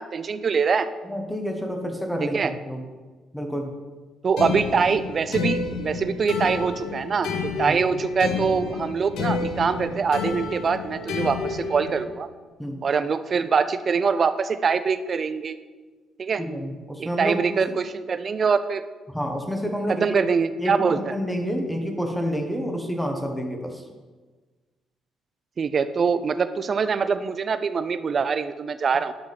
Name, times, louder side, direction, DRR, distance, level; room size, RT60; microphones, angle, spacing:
voice 1, 0.0-0.9 2.2-2.5 4.2-7.3 7.6-12.3 12.8-15.5 16.2-16.4 17.0-18.8 19.9-21.0 25.6-29.1, right 5 dB, 35° right, 11 dB, 0.4 m, -24 dB
voice 2, 1.0-2.8 3.3-3.7 7.5-7.8 12.6-12.8 16.4-17.6 19.1-20.2 20.6-23.8, equal, ahead, 3 dB, 1.1 m, -29 dB
sound 1, 4.4-12.0, left 4 dB, 80° left, 1.2 m, -30 dB
10.5 x 3.7 x 5.8 m, 1.3 s
cardioid pair, 130°, 0 cm